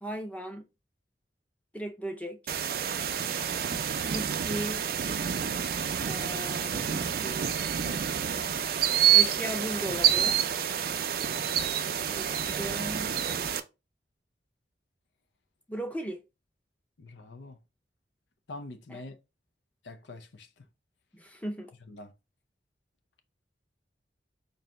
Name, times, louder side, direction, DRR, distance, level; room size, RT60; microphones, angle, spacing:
voice 1, 0.0-0.6 1.7-2.4 4.0-4.8 6.0-8.5 9.1-10.4 12.1-13.1 15.7-16.2 18.9-19.0 21.1-21.7, equal, 10° left, 0.6 m, -38 dB
sound 1, 2.5-13.6, right 9 dB, 55° right, 0.4 m, -28 dB
voice 2, 17.0-17.6 18.5-19.1 19.8-20.5 21.9-22.1, left 2 dB, 85° left, 0.6 m, -44 dB
3.9 x 2.7 x 3.3 m
head